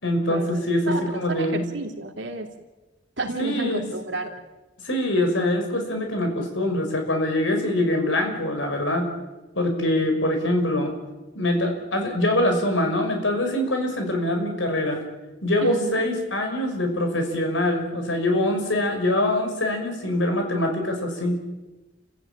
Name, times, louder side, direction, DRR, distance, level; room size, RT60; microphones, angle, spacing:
voice 1, 0.0-1.6 3.4-3.9 4.8-9.1 9.5-10.9 11.3-15.0 15.4-21.4, left 1 dB, 80° left, 4 dB, 6.0 m, -24 dB
voice 2, 0.9-2.5 3.2-4.3 15.6-16.0, right 2 dB, 70° right, 3 dB, 3.2 m, -31 dB
30.0 x 15.5 x 9.0 m, 1.1 s
head